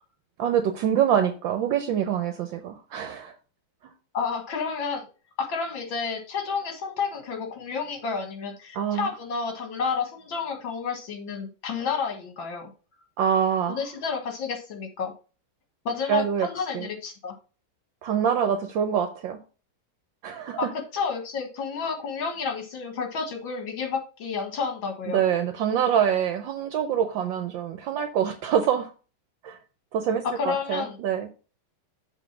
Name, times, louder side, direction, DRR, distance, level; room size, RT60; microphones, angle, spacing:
voice 1, 0.4-3.3 8.7-9.1 13.2-13.8 16.1-16.5 16.7-16.9 18.0-19.4 20.2-20.7 25.1-28.9 29.4-29.6 29.9-31.3, right 8 dB, 70° right, 7 dB, 1.3 m, -25 dB
voice 2, 4.1-5.1 5.4-12.7 13.7-15.1 15.9-17.3 20.6-25.2 30.4-31.0, left 5 dB, 65° left, 5 dB, 2.3 m, -30 dB
7.3 x 3.7 x 5.9 m, 0.35 s
omnidirectional pair, 2.3 m